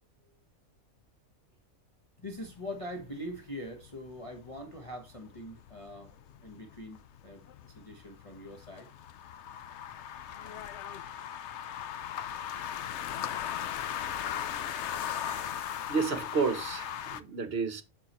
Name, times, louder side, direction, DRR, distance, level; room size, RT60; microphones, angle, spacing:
voice 1, 2.2-6.2 6.4-8.9, equal, 25° left, 1.1 m, -43 dB
sound 1, 2.3-17.2, left 9 dB, 65° left, 0.8 m, -38 dB
voice 2, 15.9-17.8, right 5 dB, 45° right, 1.1 m, -31 dB
8.4 x 6.6 x 3.0 m
omnidirectional pair, 1.5 m